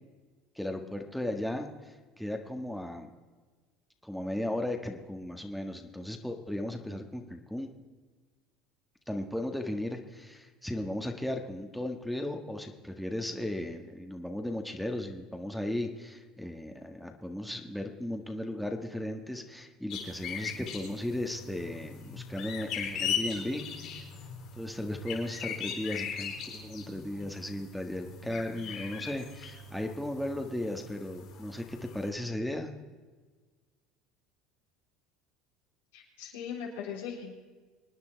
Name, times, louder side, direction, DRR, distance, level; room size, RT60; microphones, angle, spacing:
voice 1, 0.5-3.1 4.0-7.7 9.1-24.1 24.6-32.7, left 1 dB, ahead, 3 dB, 1.6 m, -36 dB
sound 1, 19.9-32.1, left 7 dB, 60° left, 4.3 m, -39 dB
voice 2, 35.9-37.3, left 7 dB, 85° left, -3 dB, 4.2 m, -39 dB
24.5 x 9.5 x 4.6 m, 1.4 s
hypercardioid pair, 85°, 0 cm